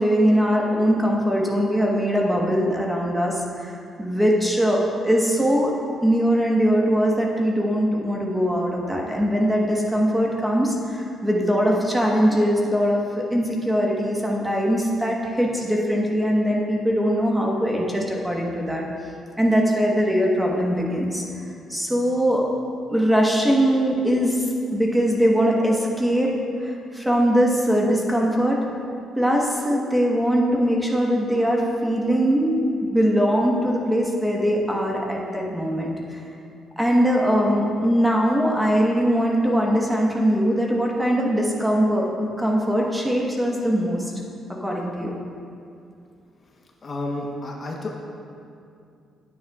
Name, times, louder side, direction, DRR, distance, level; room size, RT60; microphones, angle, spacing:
voice 1, 0.0-5.7 6.0-18.9 19.4-21.2 21.7-22.5 22.9-24.4 24.7-28.6 29.2-36.2 36.8-44.0 44.5-45.2, equal, 5° right, -1 dB, 1.2 m, -21 dB
voice 2, 46.8-48.0, left 2 dB, 40° left, 0 dB, 1.0 m, -30 dB
9.5 x 9.2 x 2.4 m, 2.5 s
cardioid pair, 90°, 0 cm